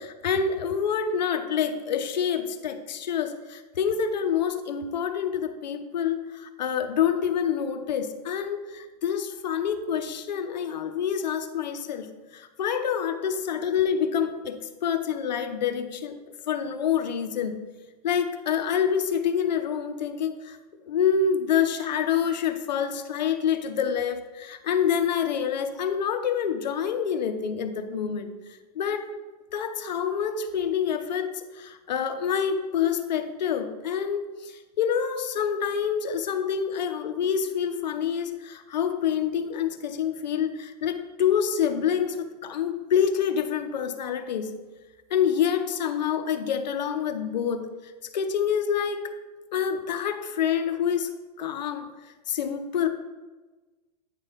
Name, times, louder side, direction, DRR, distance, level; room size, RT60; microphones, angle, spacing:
voice 1, 0.0-12.1 12.3-16.2 16.5-17.6 18.0-20.6 20.9-29.1 29.5-44.5 45.1-49.1 49.5-52.9, left 7 dB, 85° left, 8 dB, 0.8 m, -27 dB
9.1 x 3.5 x 5.6 m, 1.2 s
hypercardioid pair, 130°, 21 cm